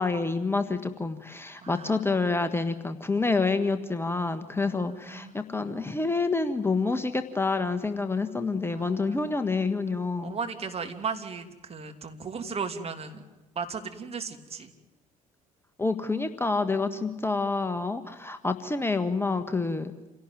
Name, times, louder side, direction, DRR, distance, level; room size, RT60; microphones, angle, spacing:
voice 1, 0.0-10.3 15.8-19.9, left 3 dB, 15° left, 9 dB, 1.5 m, -28 dB
voice 2, 1.6-2.0 4.6-5.3 8.7-9.5 10.2-13.2 13.5-14.7, right 5 dB, 35° right, 5 dB, 2.9 m, -36 dB
27.5 x 17.5 x 9.4 m, 1.1 s
figure-of-eight pair, 55°, 18 cm